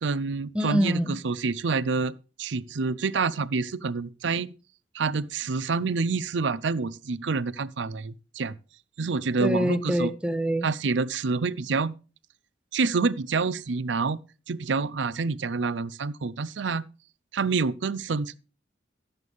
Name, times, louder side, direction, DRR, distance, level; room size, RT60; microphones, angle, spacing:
voice 1, 0.0-4.5 4.9-8.6 9.0-10.1 10.6-11.9 12.7-14.2 14.5-16.8 17.3-18.4, right 4 dB, 90° right, 0.5 m, -27 dB
voice 2, 0.5-1.2 9.4-10.7, equal, 5° right, 0.7 m, -25 dB
12.5 x 8.0 x 3.5 m
head